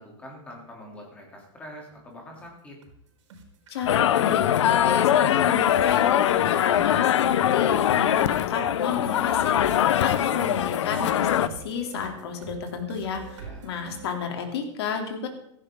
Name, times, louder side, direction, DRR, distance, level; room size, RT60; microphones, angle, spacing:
voice 1, 0.0-2.8 13.3-13.7, equal, 10° left, -1 dB, 3.1 m, -44 dB
sound 1, 1.9-2.0 2.3-2.5 2.8-3.0 3.3-14.3, right 4 dB, 85° right, 4.7 m, -43 dB
voice 2, 3.7-15.3, left 6 dB, 60° left, 4 dB, 3.2 m, -32 dB
sound 2, 3.9-11.5, left 10 dB, 80° left, 0.8 m, -22 dB
17.0 x 14.0 x 3.8 m, 0.74 s
supercardioid pair, 175°, 15 cm